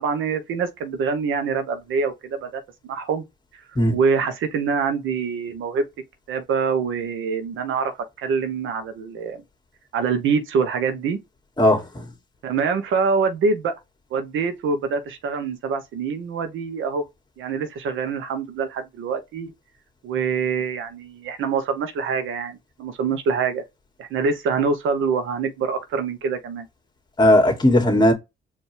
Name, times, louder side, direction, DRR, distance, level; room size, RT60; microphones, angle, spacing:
voice 1, 0.0-2.6 2.9-3.2 3.9-5.8 6.3-9.4 9.9-11.2 12.4-13.7 14.1-17.0 17.4-19.5 20.0-23.6 24.0-26.7, right 5 dB, 80° right, 1.1 m, -25 dB
voice 2, 11.6-12.0 27.2-28.1, left 1 dB, 20° left, 2.0 m, -17 dB
4.7 x 2.9 x 3.4 m
cardioid pair, 90°, 20 cm